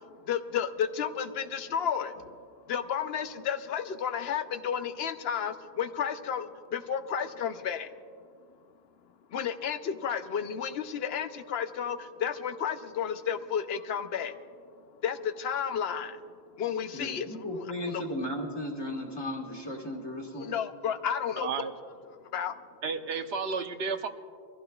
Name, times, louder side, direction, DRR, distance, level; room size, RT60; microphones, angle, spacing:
voice 1, 0.3-2.4 2.7-7.9 9.3-14.5 15.0-17.3 17.9-18.0 20.4-21.5 22.2-22.6, left 8 dB, 80° left, 10 dB, 0.9 m, -32 dB
voice 2, 16.9-20.5, left 1 dB, 25° left, 0 dB, 1.7 m, -35 dB
voice 3, 21.4-21.7 22.8-24.1, right 5 dB, 85° right, 7 dB, 1.0 m, -32 dB
23.5 x 15.0 x 2.3 m, 2.1 s
omnidirectional pair, 1.0 m